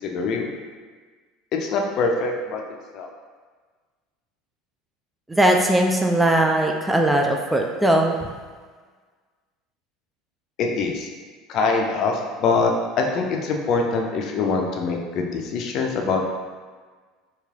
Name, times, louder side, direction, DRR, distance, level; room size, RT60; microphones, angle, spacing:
voice 1, 0.0-0.6 1.5-2.6 2.9-3.1 10.6-11.1 11.5-16.2, left 4 dB, 45° left, 2 dB, 0.5 m, -24 dB
voice 2, 5.3-8.3, right 1 dB, 10° right, 1 dB, 0.4 m, -19 dB
3.1 x 3.0 x 3.6 m, 1.5 s
figure-of-eight pair, 70°, 0 cm